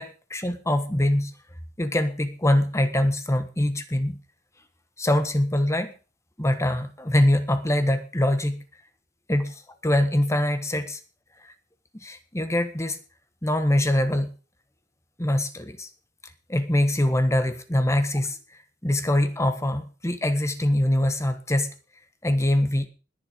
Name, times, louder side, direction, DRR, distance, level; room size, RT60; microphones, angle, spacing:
voice 1, 0.0-1.3 1.8-4.2 5.0-5.9 6.4-8.6 9.3-11.0 11.9-13.0 13.4-14.3 15.2-15.9 16.5-18.4 18.8-21.7 22.2-22.9, left 1 dB, 15° left, 9 dB, 1.4 m, -23 dB
20.5 x 7.4 x 5.2 m, 0.35 s
head